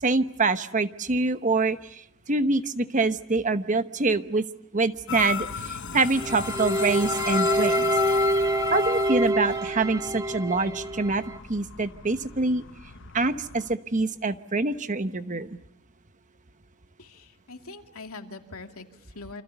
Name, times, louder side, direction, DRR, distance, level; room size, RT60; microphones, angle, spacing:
voice 1, 0.0-4.4 4.7-7.9 8.7-11.2 11.5-12.6 13.1-15.5, right 3 dB, 35° right, 11 dB, 1.1 m, -25 dB
sound 1, 5.1-13.7, left 8 dB, 60° left, 1.3 m, -34 dB
sound 2, 6.2-11.4, right 1 dB, 15° right, 1.8 m, -26 dB
voice 2, 17.0-19.4, left 3 dB, 75° left, 5 dB, 2.5 m, -43 dB
28.5 x 26.5 x 7.0 m, 0.72 s
head